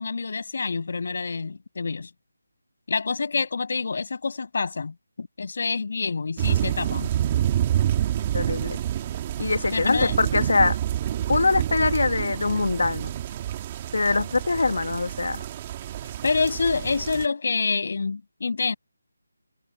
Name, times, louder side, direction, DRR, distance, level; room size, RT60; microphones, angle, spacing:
voice 1, 0.0-2.1 2.9-7.1 9.7-10.2 16.2-18.7, left 4 dB, 40° left, 7.1 m, -27 dB
sound 1, 6.4-17.3, right 11 dB, 15° right, 2.1 m, -28 dB
voice 2, 8.3-8.8 9.4-10.8 11.3-13.2 13.9-15.4, left 3 dB, 55° left, 1.3 m, -23 dB
figure-of-eight pair, 180°, 0 cm